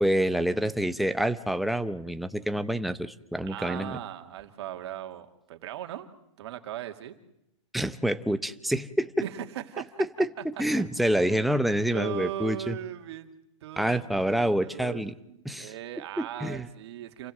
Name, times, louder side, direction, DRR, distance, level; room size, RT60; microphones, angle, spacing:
voice 1, 0.0-3.9 7.7-9.1 10.6-12.8 13.8-15.1 15.5-15.7 16.2-16.7, right 1 dB, ahead, 10 dB, 0.8 m, -27 dB
voice 2, 3.5-6.1 6.4-7.1 9.2-10.1 10.4-10.5 11.0-11.4 11.9-13.3 13.6-17.3, right 11 dB, 55° right, 6 dB, 2.5 m, -38 dB
28.5 x 16.0 x 7.8 m, 0.83 s
hypercardioid pair, 145°, 16 cm